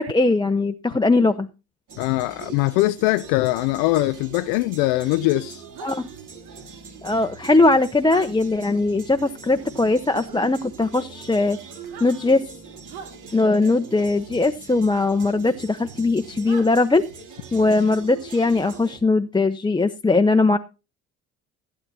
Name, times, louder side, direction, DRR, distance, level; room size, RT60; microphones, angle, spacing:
voice 1, 0.0-1.5 5.8-6.1 7.0-11.6 12.0-12.4 13.3-17.0 17.5-20.6, left 3 dB, 10° left, 0.8 m, -20 dB
sound 1, 1.9-19.0, right 5 dB, 50° right, 3.4 m, -42 dB
voice 2, 2.0-5.6, left 18 dB, 65° left, 0.6 m, -22 dB
sound 2, 5.7-6.0 8.1-8.3 10.2-10.4 11.8-12.1 12.9-13.1 15.2-15.3 16.4-16.7, right 6 dB, 70° right, 2.6 m, -39 dB
15.0 x 8.9 x 4.1 m
hypercardioid pair, 55°, 39 cm